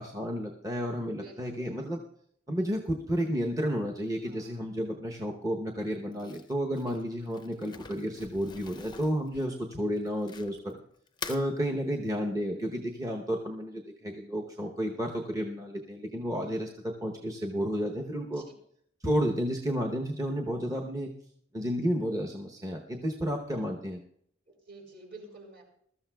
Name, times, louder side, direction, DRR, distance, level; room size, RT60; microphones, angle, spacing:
voice 1, 0.0-2.0 2.5-10.8 11.3-18.4 19.0-21.1 21.5-24.0, equal, 15° right, 1 dB, 0.8 m, -32 dB
voice 2, 1.1-1.7 4.2-4.6 6.9-7.3 9.3-9.8 18.3-18.5 24.5-25.6, right 2 dB, 55° right, 0 dB, 4.2 m, -51 dB
Crumpling crinkling, 6.1-10.7 11.1-11.5, left 6 dB, 25° left, 0.5 m, -45 dB
21.0 x 13.0 x 2.3 m, 0.67 s
head